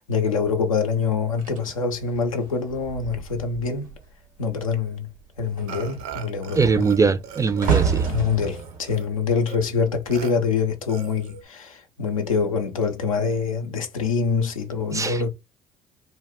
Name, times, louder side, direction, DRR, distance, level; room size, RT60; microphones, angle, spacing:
voice 1, 0.0-4.0 4.4-5.1 5.4-6.8 8.1-15.3, left 5 dB, 90° left, 0.4 m, -25 dB
sound 1, 1.4-4.1 4.4-4.8 5.1-10.4 11.2-11.4, right 6 dB, 90° right, 0.9 m, -29 dB
Burping eructation, 5.7-7.0 7.2-9.1 9.5-9.6 10.1-10.3 10.9-11.4, right 8 dB, 70° right, 0.5 m, -40 dB
voice 2, 6.6-8.1 14.9-15.3, right 5 dB, 20° right, 0.3 m, -21 dB
2.2 x 2.1 x 3.4 m
hypercardioid pair, 50°, 17 cm